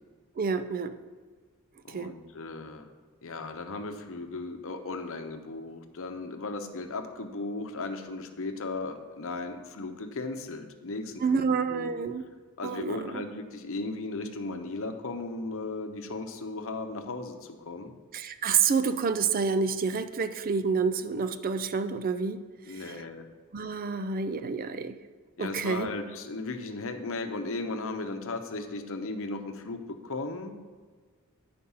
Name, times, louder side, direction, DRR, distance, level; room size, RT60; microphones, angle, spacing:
voice 1, 0.4-0.9 1.9-2.1 11.2-12.2 12.6-13.0 18.1-22.4 22.8-23.0 23.5-25.0 25.4-25.9, right 5 dB, 40° right, 10 dB, 0.4 m, -28 dB
voice 2, 1.8-2.9 3.2-11.4 11.7-11.9 12.6-17.9 22.7-23.3 25.4-30.6, left 3 dB, 65° left, 6 dB, 0.9 m, -36 dB
10.0 x 5.2 x 5.5 m, 1.5 s
head